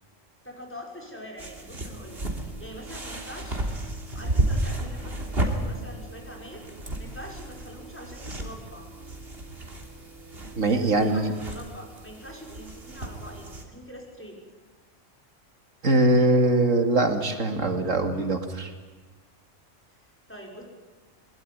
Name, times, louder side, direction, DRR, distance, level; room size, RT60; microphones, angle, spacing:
voice 1, 0.4-3.6 4.1-6.6 7.0-8.9 10.7-14.4 15.8-16.3 19.9-20.6, equal, 10° left, 0 dB, 5.9 m, -44 dB
sound 1, 1.4-13.6, right 1 dB, 50° right, 3.3 m, -33 dB
voice 2, 10.6-11.3 15.8-18.7, right 2 dB, 75° right, 6 dB, 2.7 m, -22 dB
22.5 x 22.5 x 9.7 m, 1.3 s
omnidirectional pair, 1.3 m